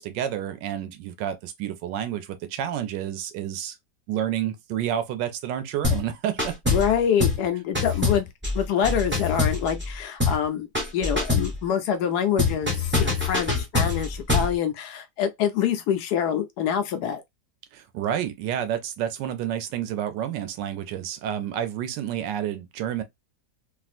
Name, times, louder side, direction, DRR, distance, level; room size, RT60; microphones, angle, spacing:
voice 1, 0.0-3.8 4.1-6.7 17.7-23.0, right 10 dB, 80° right, 1.3 m, -29 dB
sound 1, 5.8-6.1 6.4-6.9 7.2-7.5 7.7-9.9 10.2-10.5 10.7-11.5 12.4-14.5, left 3 dB, 10° right, 0.7 m, -24 dB
voice 2, 6.7-8.3 8.5-10.7 10.9-17.2, left 8 dB, 75° left, 1.0 m, -25 dB
3.3 x 2.4 x 2.4 m
omnidirectional pair, 1.9 m